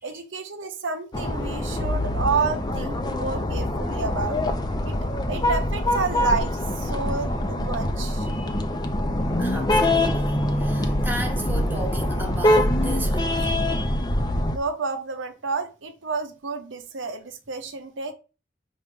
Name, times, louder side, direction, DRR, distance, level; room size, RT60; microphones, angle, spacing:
voice 1, 0.0-4.4 4.8-5.0 5.3-8.3 14.5-18.1, right 4 dB, 80° right, 0.9 m, -30 dB
sound 1, 1.1-14.6, left 1 dB, 20° left, 0.7 m, -24 dB
voice 2, 8.2-9.1 9.4-13.9, right 1 dB, 10° right, 1.2 m, -37 dB
5.8 x 3.1 x 5.2 m
head